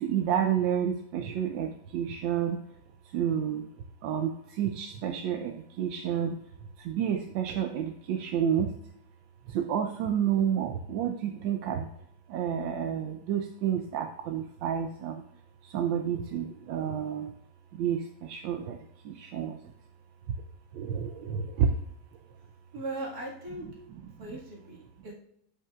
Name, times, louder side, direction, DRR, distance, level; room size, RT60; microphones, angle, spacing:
voice 1, 0.0-2.6 3.1-3.6 4.0-4.3 4.6-6.4 6.8-8.7 9.5-11.9 12.3-15.1 15.7-17.3 17.8-18.8 19.2-19.6 20.8-21.7, right 9 dB, 80° right, 5 dB, 1.3 m, -29 dB
voice 2, 22.7-23.7 24.2-25.1, right 2 dB, 55° right, -3 dB, 2.4 m, -38 dB
13.5 x 5.6 x 2.4 m, 0.74 s
omnidirectional pair, 2.0 m